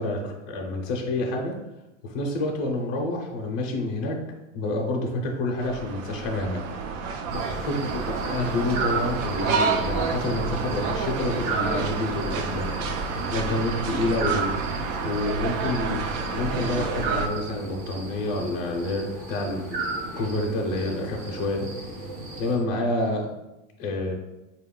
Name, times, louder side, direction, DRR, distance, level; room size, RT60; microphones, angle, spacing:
voice 1, 0.0-1.5 2.0-4.2 4.5-6.6 7.3-12.7 13.3-14.5 15.0-16.0 16.3-21.7 22.4-23.3 23.8-24.1, left 2 dB, 35° left, -1 dB, 0.4 m, -28 dB
sound 1, 5.6-17.3, right 5 dB, 75° right, 0.6 m, -29 dB
sound 2, 7.3-22.6, right 3 dB, 25° right, 0.5 m, -35 dB
4.2 x 2.3 x 3.5 m, 0.96 s
supercardioid pair, 180°, 38 cm